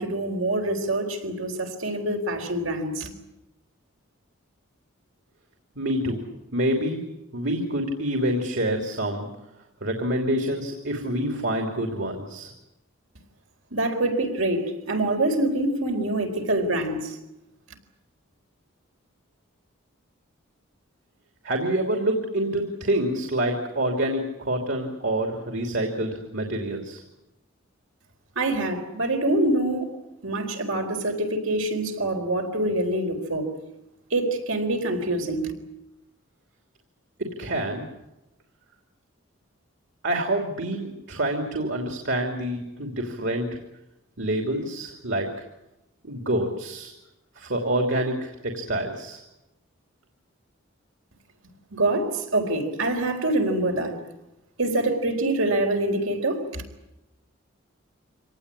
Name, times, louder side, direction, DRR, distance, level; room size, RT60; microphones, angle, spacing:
voice 1, 0.0-3.1 13.7-17.2 28.4-29.9 30.2-33.5 34.1-35.5 51.7-54.0 54.6-56.6, right 1 dB, 80° right, 3 dB, 4.4 m, -25 dB
voice 2, 5.7-6.2 6.5-7.0 7.3-9.3 9.8-12.5 21.4-27.0 37.4-37.8 40.0-43.5 44.2-45.3 46.0-46.9 47.4-49.2, right 1 dB, 60° right, 3 dB, 3.0 m, -27 dB
25.5 x 18.5 x 9.9 m, 0.94 s
head